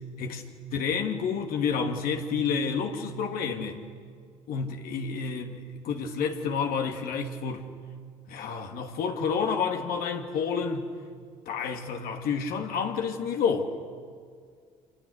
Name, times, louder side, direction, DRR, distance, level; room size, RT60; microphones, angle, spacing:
voice 1, 0.7-3.8 4.5-7.7 8.3-10.9 11.5-13.7, left 6 dB, 65° left, 2.8 m, -29 dB
29.5 x 28.5 x 6.6 m
hypercardioid pair, 55°, 16 cm